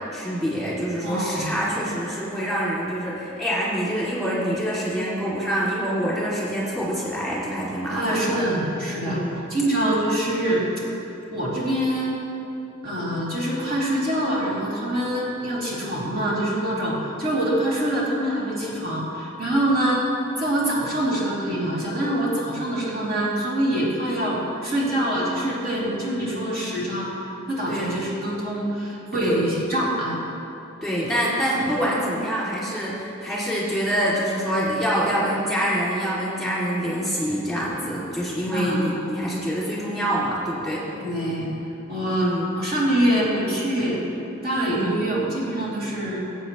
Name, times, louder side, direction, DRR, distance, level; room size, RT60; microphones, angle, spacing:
voice 1, 0.1-8.4 9.0-9.4 27.7-28.0 29.2-29.5 30.8-40.8 42.1-42.5 44.7-45.0, equal, ahead, -8 dB, 2.6 m, -26 dB
voice 2, 1.0-1.6 7.9-9.2 9.5-10.6 11.3-12.1 12.8-20.0 20.4-30.1 31.0-31.1 31.6-31.7 38.4-38.9 41.0-41.5 41.9-44.0 44.4-46.2, right 1 dB, 50° right, -7 dB, 2.8 m, -25 dB
20.0 x 8.4 x 3.1 m, 3.0 s
head